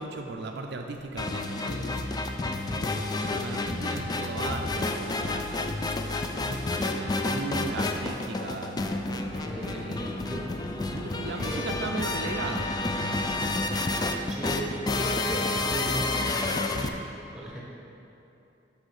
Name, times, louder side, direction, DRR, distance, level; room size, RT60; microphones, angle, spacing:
voice 1, 0.0-2.1 2.7-5.7 6.3-10.3 10.9-13.3, right 3 dB, 65° right, 3 dB, 0.4 m, -37 dB
sound 1, 1.2-16.9, left 2 dB, 20° left, 0.3 m, -30 dB
voice 2, 8.9-10.5 11.3-11.7 14.3-16.8 17.3-17.6, right 1 dB, 5° right, -4 dB, 1.2 m, -37 dB
6.4 x 5.4 x 4.8 m, 2.8 s
head